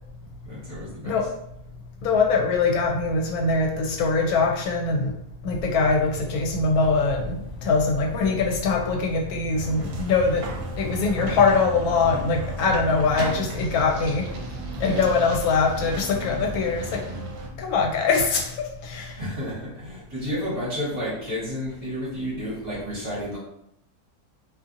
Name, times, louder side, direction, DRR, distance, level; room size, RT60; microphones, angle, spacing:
voice 1, 0.4-1.3 14.8-15.1 17.1-17.2 19.2-23.4, equal, 30° right, -9 dB, 1.2 m, -31 dB
voice 2, 2.0-5.1 5.4-10.4 10.7-14.2 14.8-17.0 17.6-18.6 18.8-19.2, left 4 dB, 80° left, 1 dB, 1.0 m, -22 dB
sound 1, 5.5-16.9, equal, 50° left, 0.3 m, -39 dB
sound 2, 9.6-17.5, right 2 dB, 75° right, 1.0 m, -35 dB
2.6 x 2.6 x 2.5 m, 0.75 s
omnidirectional pair, 1.6 m